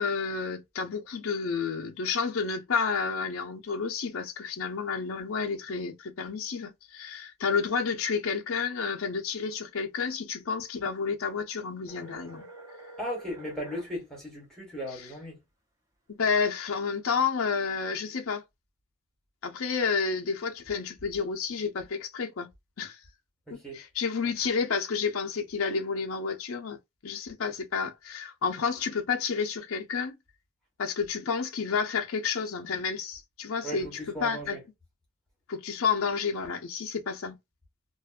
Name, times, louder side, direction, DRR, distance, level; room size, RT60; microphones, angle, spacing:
voice 1, 0.0-12.5 16.1-18.4 19.4-22.5 22.8-23.0 23.5-30.2 30.8-33.9 34.2-34.6 35.5-37.4, left 5 dB, 75° left, 0.5 m, -30 dB
sound 1, 11.9-13.9, right 1 dB, 15° right, 0.7 m, -47 dB
voice 2, 13.0-15.4 23.5-23.8 33.6-34.6, equal, 5° left, 1.1 m, -37 dB
2.5 x 2.1 x 2.4 m
head